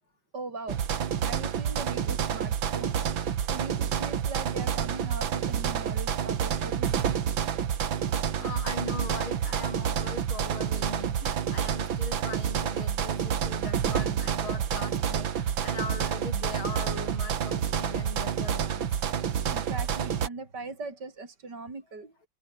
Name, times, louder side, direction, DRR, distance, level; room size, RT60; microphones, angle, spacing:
voice 1, 0.3-0.8 1.2-2.9 3.5-7.0 14.5-14.6 19.4-22.3, right 3 dB, 55° right, 4.8 m, -40 dB
sound 1, 0.7-20.3, right 8 dB, 70° right, 2.3 m, -29 dB
voice 2, 8.4-19.0, left 3 dB, 85° left, 5.7 m, -40 dB
omnidirectional pair, 2.2 m